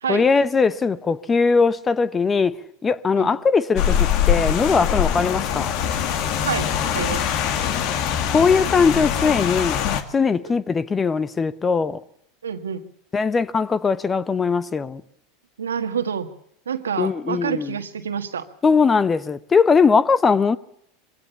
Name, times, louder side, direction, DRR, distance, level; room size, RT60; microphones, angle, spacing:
voice 1, 0.1-2.6 2.8-5.8 8.3-12.0 13.1-15.0 17.0-17.7 18.6-20.6, left 5 dB, 20° left, 1.0 m, -20 dB
Rain, 3.8-10.0, left 9 dB, 55° left, 1.9 m, -23 dB
voice 2, 6.4-7.3 10.4-10.6 12.4-12.8 15.6-16.3 16.7-18.5, right 7 dB, 90° right, 1.6 m, -28 dB
22.5 x 16.5 x 7.0 m
hypercardioid pair, 90°, 0 cm